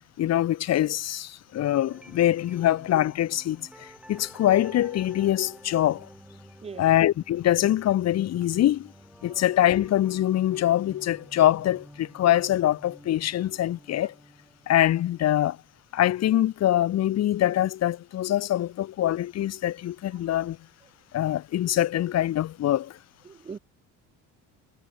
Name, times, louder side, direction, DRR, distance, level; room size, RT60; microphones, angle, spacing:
voice 1, 0.2-6.1 6.8-8.9 9.2-14.1 14.7-15.6 15.9-20.6 21.1-23.0, left 12 dB, 50° left, 2.2 m, -24 dB
sound 1, 1.9-15.8, right 1 dB, 5° right, 6.1 m, -51 dB
voice 2, 23.3-23.6, right 5 dB, 20° right, 1.0 m, -40 dB
cardioid pair, 145°, 33 cm